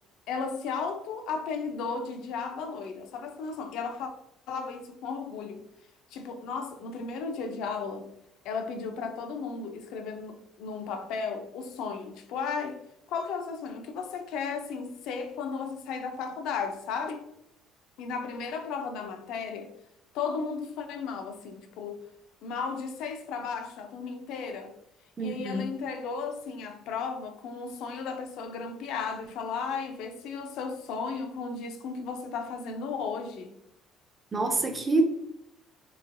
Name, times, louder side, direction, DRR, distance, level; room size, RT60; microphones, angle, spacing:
voice 1, 0.3-4.1 4.5-5.6 6.1-8.1 8.4-12.8 13.1-17.2 18.0-19.7 20.1-22.0 22.4-24.7 25.2-33.5, left 5 dB, 75° left, 0.5 m, -35 dB
voice 2, 25.2-25.7 34.3-35.1, right 2 dB, 20° right, 0.5 m, -26 dB
3.7 x 2.9 x 2.6 m
cardioid pair, 135°, 0 cm